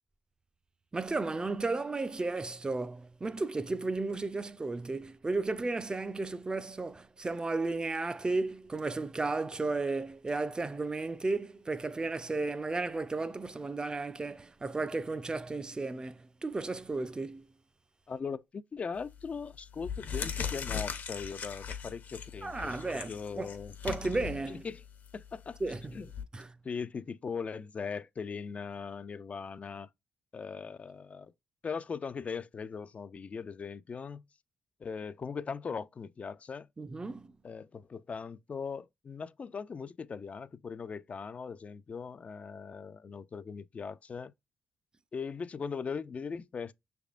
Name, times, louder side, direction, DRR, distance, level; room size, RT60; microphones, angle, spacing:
voice 1, 0.9-17.5 22.4-23.5 23.8-24.6 25.6-25.9 26.3-26.5 36.8-37.3, right 3 dB, 25° right, 0.5 m, -34 dB
voice 2, 18.1-23.8 24.5-24.8 25.1-25.6 25.9-26.1 26.6-29.9 30.3-31.3 31.6-34.2 34.8-36.7 37.4-44.3 45.1-46.7, left 5 dB, 45° left, 0.4 m, -39 dB
sound 1, 19.0-19.3 19.7-26.2, left 7 dB, 65° left, 0.9 m, -39 dB
6.2 x 3.5 x 2.4 m
cardioid pair, 65°, 3 cm